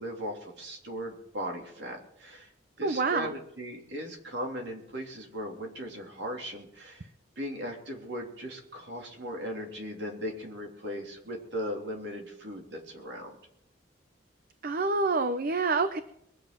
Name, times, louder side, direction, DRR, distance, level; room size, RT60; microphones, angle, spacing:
voice 1, 0.0-2.5 2.8-7.1 7.4-13.3, equal, 65° right, 1 dB, 3.2 m, -38 dB
voice 2, 2.8-3.3 14.6-16.0, right 3 dB, 50° right, 11 dB, 0.6 m, -27 dB
22.0 x 7.7 x 6.0 m, 0.75 s
head